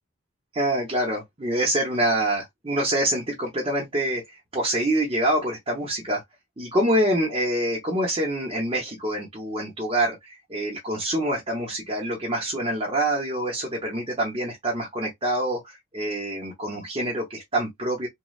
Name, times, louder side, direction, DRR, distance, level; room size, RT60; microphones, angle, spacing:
voice 1, 0.5-6.2 6.6-18.1, right 1 dB, 25° right, 0.9 m, -26 dB
3.1 x 2.3 x 2.3 m
head